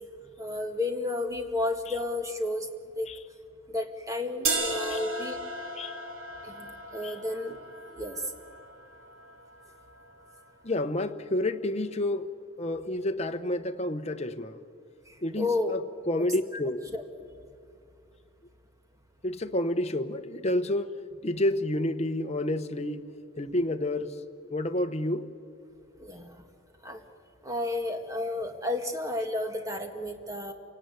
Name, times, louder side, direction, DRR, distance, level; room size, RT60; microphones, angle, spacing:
voice 1, 0.4-2.7 3.0-3.1 3.7-5.4 6.4-7.6 7.9-8.2 15.4-15.8 16.9-17.0 26.0-26.4 26.8-27.0 27.4-30.5, left 2 dB, 15° right, 1.8 m, -32 dB
sound 1, 4.4-10.4, right 2 dB, 70° right, 2.5 m, -36 dB
voice 2, 10.6-12.3 12.6-14.6 15.2-15.8 16.1-16.8 19.2-23.0 23.4-24.1 24.5-25.3, left 1 dB, 30° left, 0.9 m, -29 dB
28.5 x 18.0 x 9.5 m
head